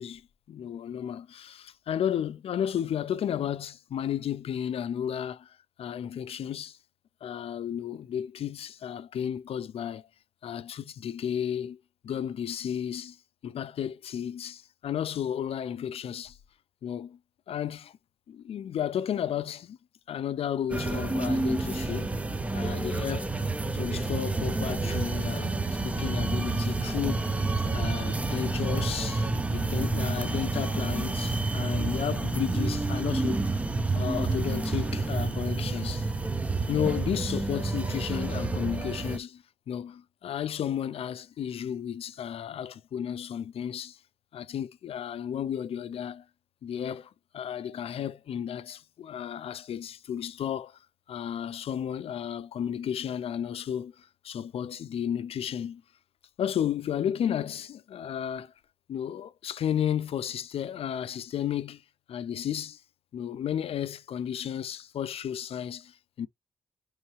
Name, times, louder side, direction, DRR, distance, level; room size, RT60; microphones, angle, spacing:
voice 1, 0.0-6.8 7.2-10.0 10.4-11.8 12.0-13.2 13.4-16.4 16.8-17.2 17.5-18.0 18.3-19.8 20.1-22.1 22.5-23.3 23.7-27.4 27.7-33.5 34.0-36.1 36.7-44.0 44.3-46.3 46.6-50.8 51.1-55.8 56.4-58.5 58.9-61.8 62.1-62.8 63.1-66.3, left 9 dB, 70° left, 0.4 m, -33 dB
sound 1, 20.7-39.2, right 3 dB, 15° right, 0.4 m, -29 dB
4.6 x 3.1 x 3.0 m
wide cardioid pair, 180°, 10 cm